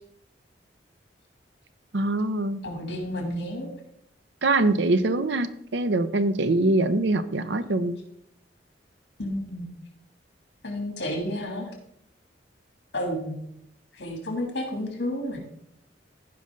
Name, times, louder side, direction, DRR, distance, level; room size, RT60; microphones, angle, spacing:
voice 1, 1.9-2.6 4.4-5.5 5.7-8.0, right 2 dB, 75° right, 12 dB, 0.7 m, -23 dB
voice 2, 2.6-3.7 9.2-9.7 10.6-11.7 12.9-13.4 13.9-15.4, left 1 dB, 70° left, 2 dB, 2.9 m, -31 dB
15.0 x 5.4 x 3.8 m, 0.71 s
head